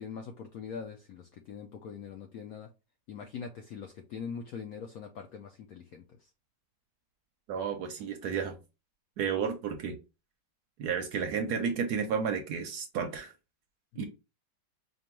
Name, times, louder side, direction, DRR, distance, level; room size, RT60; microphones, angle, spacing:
voice 1, 0.0-2.7 3.1-6.3 13.9-14.0, left 6 dB, 75° left, 0.8 m, -42 dB
voice 2, 7.5-8.6 9.2-10.0 10.8-13.3 14.0-14.1, right 6 dB, 70° right, 1.0 m, -32 dB
5.1 x 2.3 x 3.0 m
omnidirectional pair, 2.1 m